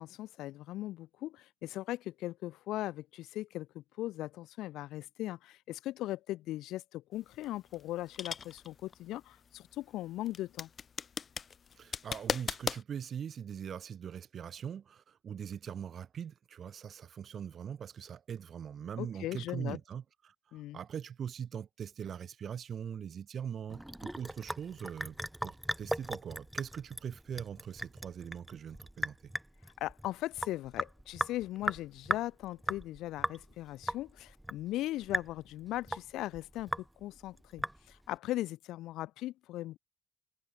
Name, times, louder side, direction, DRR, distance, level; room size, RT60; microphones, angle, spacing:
voice 1, 0.0-10.7 19.0-19.8 20.5-20.8 29.8-36.7 37.0-39.8, left 15 dB, 90° left, 4.0 m, -39 dB
sound 1, 7.2-12.8, left 6 dB, 45° left, 1.8 m, -38 dB
voice 2, 11.8-29.3, right 8 dB, 55° right, 2.7 m, -42 dB
Sink (filling or washing) / Drip, 23.7-38.2, right 1 dB, 5° right, 4.8 m, -38 dB
cardioid pair, 90°, 0 cm